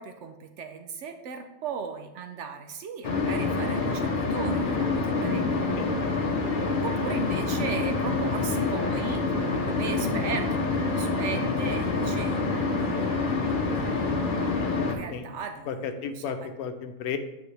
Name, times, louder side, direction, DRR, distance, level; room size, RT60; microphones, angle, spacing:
voice 1, 0.0-5.8 6.8-13.0 13.3-13.4 13.7-13.9 14.9-16.5, right 6 dB, 65° right, 6 dB, 0.8 m, -37 dB
sound 1, 3.0-14.9, left 3 dB, 45° left, 0.7 m, -27 dB
voice 2, 5.8-6.1 15.1-15.2 15.7-15.8 16.0-17.2, left 7 dB, 90° left, 8 dB, 1.1 m, -33 dB
8.2 x 4.1 x 3.2 m, 0.97 s
omnidirectional pair, 1.5 m